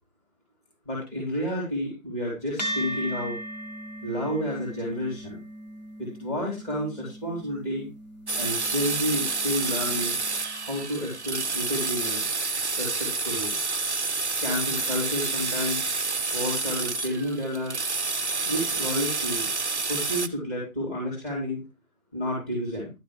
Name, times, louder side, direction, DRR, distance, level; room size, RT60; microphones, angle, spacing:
voice 1, 0.9-3.3 4.0-5.4 6.0-7.9 8.4-10.1 10.6-12.2 12.8-13.6 14.4-15.9 16.3-17.8 18.4-19.5 19.9-21.6 22.1-22.9, equal, 10° left, -5 dB, 3.5 m, -30 dB
sound 1, 2.6-11.3, right 1 dB, 30° left, 1.3 m, -39 dB
sound 2, 8.3-20.3, right 3 dB, 50° right, 0.7 m, -29 dB
11.5 x 6.8 x 5.0 m, 0.26 s
figure-of-eight pair, 160°, 44 cm